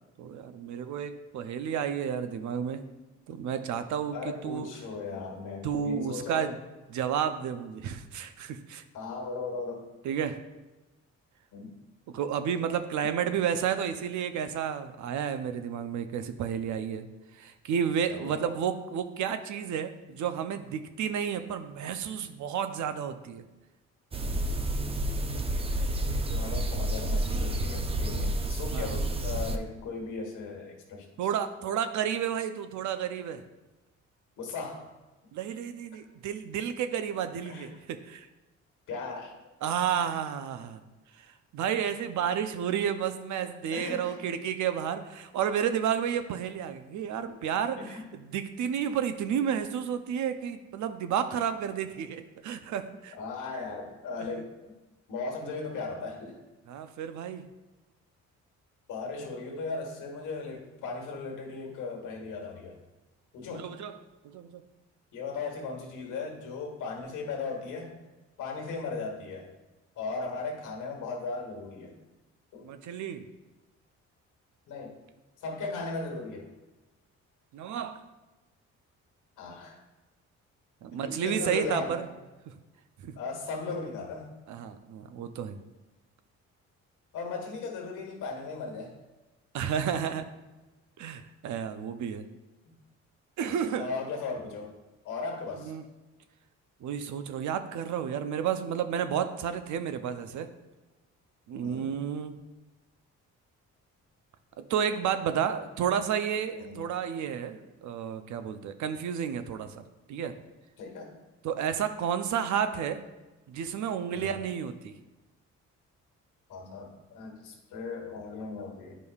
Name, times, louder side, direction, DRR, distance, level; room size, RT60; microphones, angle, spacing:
voice 1, 0.2-2.8 3.3-4.7 5.6-6.6 6.9-8.8 10.0-10.4 12.1-17.1 17.3-23.4 28.7-29.0 31.2-33.4 35.3-38.3 39.6-40.8 41.5-53.2 56.7-57.5 63.5-64.0 64.2-64.6 72.6-73.3 77.5-78.0 80.8-82.1 82.5-82.6 83.0-83.1 84.5-85.6 89.5-90.3 91.0-92.3 93.4-93.9 95.6-95.8 96.8-100.5 101.5-102.4 104.6-109.8 110.1-110.3 111.4-113.0 113.5-114.9, right 8 dB, 70° right, 9 dB, 0.6 m, -31 dB
voice 2, 4.1-6.6 8.9-9.9 11.5-11.7 18.1-18.5 26.3-31.1 34.4-34.9 37.5-37.7 38.9-39.3 43.7-44.2 47.8-48.1 53.2-54.7 55.1-56.4 58.9-62.8 63.3-63.7 65.1-67.9 68.4-69.5 70.0-71.9 72.5-72.7 74.7-74.9 75.4-76.5 79.4-79.8 81.0-82.0 83.2-84.3 87.1-89.0 93.5-94.7 95.0-95.7 101.6-101.9 106.5-106.8 110.8-111.1 114.1-114.4 116.5-119.0, left 4 dB, 85° left, 2 dB, 1.4 m, -37 dB
sound 1, 24.1-29.6, right 1 dB, 20° right, 0.5 m, -30 dB
9.6 x 5.1 x 2.4 m, 1.1 s
cardioid pair, 90°, 30 cm